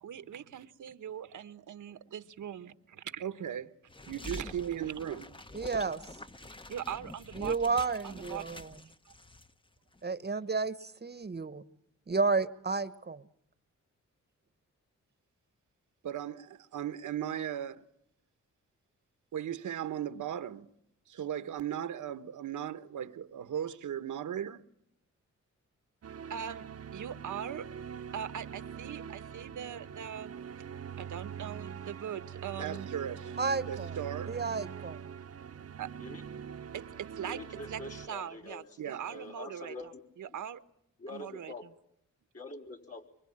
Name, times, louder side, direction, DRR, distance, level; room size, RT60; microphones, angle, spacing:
voice 1, 0.0-3.7 4.0-5.3 6.7-7.7 8.0-8.6 16.0-17.9 19.3-20.7 21.1-24.6 26.3-26.7 26.9-27.7 28.1-30.3 31.0-33.4 33.7-34.4 35.8-35.9 36.7-37.4 37.7-37.8 38.1-39.7 40.2-40.6 41.1-41.5, right 9 dB, 85° right, 1.3 m, -39 dB
sound 1, 3.9-9.5 9.8-10.0, left 1 dB, 15° left, 1.0 m, -47 dB
voice 2, 5.5-6.0 7.3-8.8 10.0-11.6 12.1-13.2 33.4-34.0 34.3-35.0, right 4 dB, 35° right, 1.1 m, -32 dB
sound 2, 26.0-38.1, right 8 dB, 55° right, 0.9 m, -43 dB
voice 3, 36.0-36.7 37.2-38.8 39.1-40.0 40.3-40.4 41.0-41.7 42.3-43.1, left 2 dB, 50° left, 4.1 m, -45 dB
25.0 x 24.0 x 8.8 m
cardioid pair, 90°, 30 cm